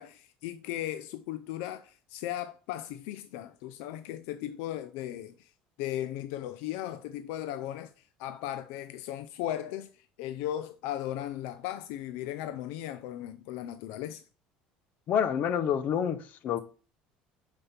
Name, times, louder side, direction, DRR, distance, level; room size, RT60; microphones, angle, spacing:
voice 1, 0.0-5.5 5.8-14.2, left 12 dB, 80° left, 0.5 m, -37 dB
voice 2, 15.1-16.6, left 8 dB, 55° left, 0.9 m, -28 dB
6.6 x 5.3 x 4.3 m
supercardioid pair, 115°, 3 cm